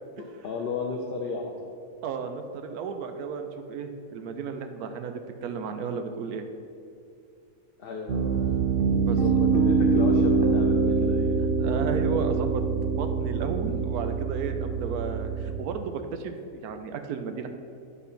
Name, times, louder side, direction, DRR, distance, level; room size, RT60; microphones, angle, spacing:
voice 1, 0.2-1.5 7.8-8.6 9.1-11.4, left 4 dB, 55° left, 0 dB, 0.7 m, -34 dB
voice 2, 2.0-6.5 9.0-9.2 11.6-12.6 12.9-17.5, right 5 dB, 90° right, 7 dB, 1.1 m, -33 dB
Piano, 8.1-15.6, right 4 dB, 55° right, 0.7 m, -24 dB
8.2 x 4.1 x 5.6 m, 2.4 s
omnidirectional pair, 1.5 m